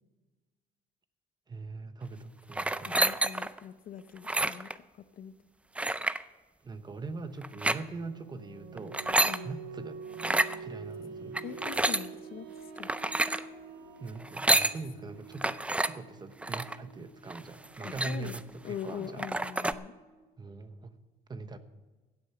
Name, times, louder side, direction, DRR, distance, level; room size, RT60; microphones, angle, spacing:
voice 1, 1.5-3.0 6.6-9.0 9.4-10.0 10.6-11.6 14.0-19.2 20.4-21.0 21.3-21.6, right 3 dB, 25° right, 10 dB, 1.0 m, -42 dB
sound 1, 2.5-3.6 4.2-4.7 5.8-6.2 7.4-7.8 8.8-9.4 10.1-10.5 11.3-12.1 12.8-13.4 14.2-14.8 15.4-15.9 16.4-16.8 17.3-17.4 17.6-18.5 18.9-19.0 19.2-19.7, right 2 dB, 5° right, 0.4 m, -29 dB
voice 2, 2.8-5.3 9.2-9.5 11.4-12.5 12.7-12.9 17.8-18.3 18.6-19.9, left 9 dB, 60° left, 13 dB, 0.7 m, -42 dB
sound 2, 7.7-20.3, right 5 dB, 80° right, 1.5 m, -47 dB
16.0 x 8.1 x 5.8 m, 1.2 s
cardioid pair, 110°, 17 cm